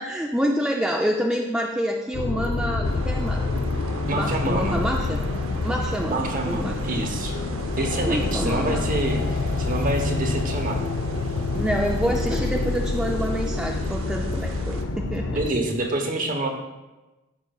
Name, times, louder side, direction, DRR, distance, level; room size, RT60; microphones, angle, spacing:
voice 1, 0.0-3.8 4.1-5.2 5.6-6.8 8.1-8.9 11.5-15.3, equal, 5° right, -1 dB, 0.3 m, -27 dB
sound 1, 2.1-15.5, left 3 dB, 65° left, 0.5 m, -27 dB
sound 2, 2.8-14.8, right 2 dB, 70° right, 0.7 m, -39 dB
voice 2, 4.1-4.8 6.1-7.4 7.8-10.8 15.3-16.5, right 2 dB, 40° right, 3 dB, 0.9 m, -27 dB
12.5 x 5.2 x 2.3 m, 1.1 s
head